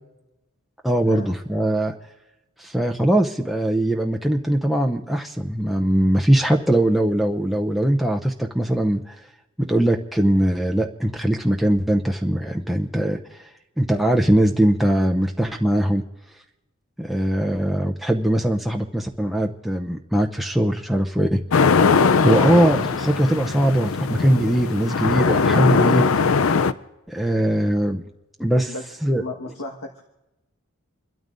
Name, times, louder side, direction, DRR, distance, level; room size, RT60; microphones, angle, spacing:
voice 1, 0.8-1.9 2.6-9.2 9.6-13.5 13.8-16.0 17.0-21.4 22.2-26.1 27.1-28.0 28.4-28.7 29.0-29.2, right 1 dB, ahead, 1 dB, 0.6 m, -21 dB
sound 1, 21.5-26.7, left 5 dB, 65° left, 0.5 m, -20 dB
voice 2, 29.1-30.0, left 2 dB, 80° left, 0 dB, 1.5 m, -33 dB
29.0 x 12.5 x 2.6 m, 1.0 s
head